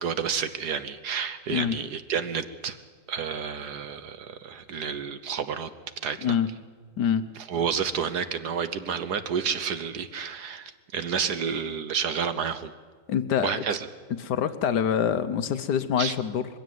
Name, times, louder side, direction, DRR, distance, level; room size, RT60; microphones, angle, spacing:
voice 1, 0.0-2.8 3.1-5.7 6.0-6.3 7.5-12.7 13.4-13.8 16.0-16.1, right 7 dB, 60° right, 12 dB, 1.3 m, -30 dB
voice 2, 13.1-13.6 14.2-16.5, left 8 dB, 65° left, 11 dB, 1.3 m, -25 dB
21.0 x 16.0 x 9.3 m, 1.5 s
omnidirectional pair, 2.1 m